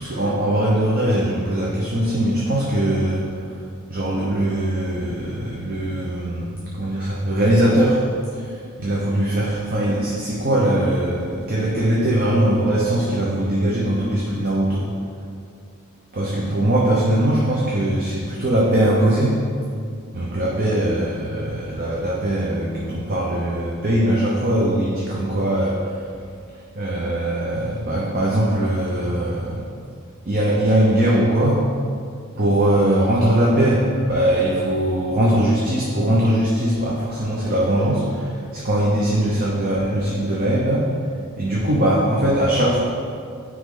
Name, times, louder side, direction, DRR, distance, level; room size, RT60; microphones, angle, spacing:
voice 1, 0.0-3.5 3.9-8.0 8.3-14.9 16.1-19.4 20.1-26.0 26.8-29.6 30.3-31.7 32.4-40.9 41.4-42.8, right 1 dB, 45° right, -5 dB, 0.8 m, -21 dB
9.4 x 3.1 x 3.8 m, 2.2 s
head